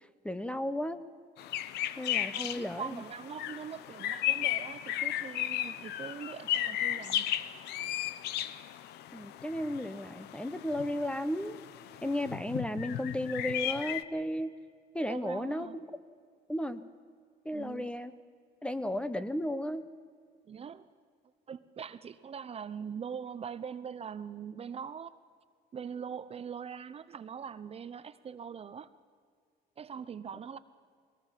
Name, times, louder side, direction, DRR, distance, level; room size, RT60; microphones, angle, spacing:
voice 1, 0.2-1.0 2.0-3.0 9.1-11.6 12.0-14.5 14.9-15.9 16.5-16.8 17.4-18.1 18.6-19.8, left 1 dB, 5° left, 13 dB, 0.9 m, -34 dB
sound 1, 1.4-14.0, left 12 dB, 80° left, 0.8 m, -35 dB
voice 2, 2.3-7.3 15.1-15.8 17.5-17.9 20.5-20.9 21.5-25.1 25.7-28.9 29.8-30.6, right 7 dB, 35° right, 13 dB, 0.7 m, -42 dB
21.5 x 18.5 x 7.4 m, 2.1 s
cardioid pair, 110°, 17 cm